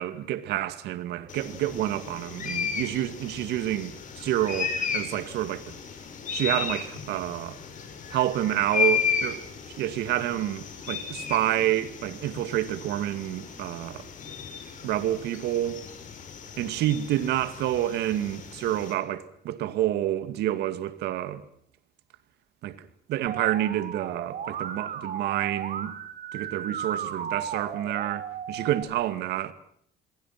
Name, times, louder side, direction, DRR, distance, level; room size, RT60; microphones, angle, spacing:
voice 1, 0.0-5.7 6.3-7.6 8.1-14.1 14.8-15.8 16.6-21.4 22.6-25.9 26.3-29.5, right 13 dB, 80° right, 2.2 m, -28 dB
sound 1, 1.3-18.9, left 6 dB, 50° left, 6.6 m, -34 dB
Musical instrument, 23.3-28.8, right 8 dB, 55° right, 4.1 m, -35 dB
29.0 x 22.5 x 6.0 m
cardioid pair, 110°, 17 cm